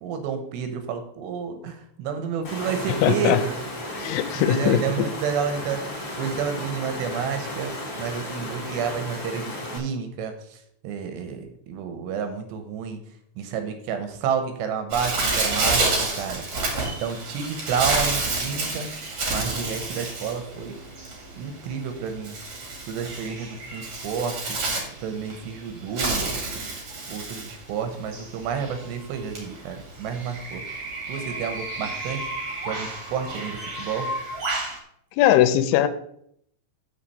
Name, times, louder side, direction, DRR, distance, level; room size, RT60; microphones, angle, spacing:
voice 1, 0.0-3.6 4.4-13.0 13.4-18.9 19.3-20.8 21.4-22.4 22.9-26.4 27.1-30.6 31.1-32.3 32.6-34.1, right 6 dB, 75° right, 7 dB, 3.0 m, -30 dB
Water, 2.4-9.8, left 1 dB, 35° left, 2.1 m, -34 dB
voice 2, 3.0-3.4 3.9-5.1 35.2-35.9, left 11 dB, 85° left, 11 dB, 3.1 m, -20 dB
Bird, 14.9-34.8, right 2 dB, 40° right, 2.3 m, -30 dB
7.2 x 6.0 x 6.7 m, 0.68 s
omnidirectional pair, 5.3 m